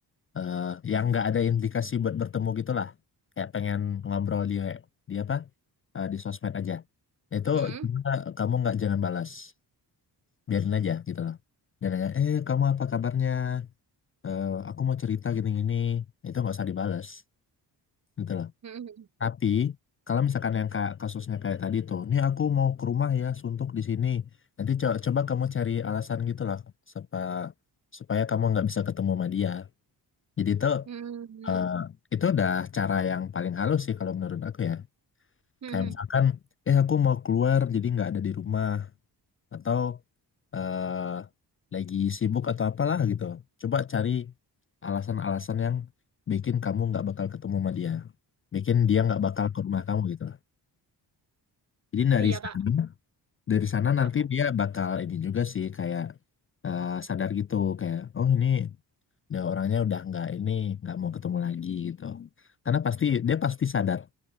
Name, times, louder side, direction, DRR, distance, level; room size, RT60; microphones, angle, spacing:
voice 1, 0.3-2.9 3.4-4.8 5.1-5.5 5.9-6.8 7.3-9.5 10.5-11.4 11.8-13.7 14.2-17.2 18.2-18.5 19.2-19.8 20.1-24.3 24.6-26.6 27.0-27.5 27.9-29.7 30.4-30.9 31.4-34.8 35.7-36.4 36.7-38.9 39.5-40.0 40.5-41.3 41.7-44.3 44.8-45.9 46.3-48.1 48.5-50.4 51.9-52.9 53.5-56.1 56.6-58.7 59.3-62.3 62.7-64.1, left 8 dB, 30° left, 0.4 m, -27 dB
voice 2, 7.5-7.9 18.6-19.1 30.9-31.6 35.6-36.0 52.2-52.6 54.0-54.1, right 7 dB, 40° right, 1.1 m, -39 dB
wide cardioid pair, 130°, 41 cm